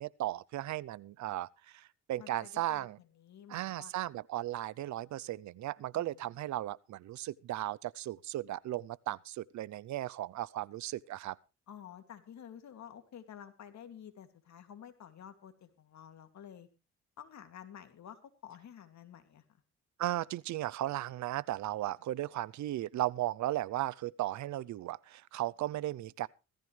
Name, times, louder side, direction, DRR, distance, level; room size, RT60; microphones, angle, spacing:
voice 1, 0.0-3.0 3.5-11.4 20.0-26.3, right 14 dB, 70° right, 0.6 m, -36 dB
voice 2, 2.2-3.9 6.0-6.2 11.7-16.7 17.2-19.6, left 9 dB, 65° left, 2.5 m, -51 dB
17.5 x 14.5 x 3.3 m
cardioid pair, 90°, 30 cm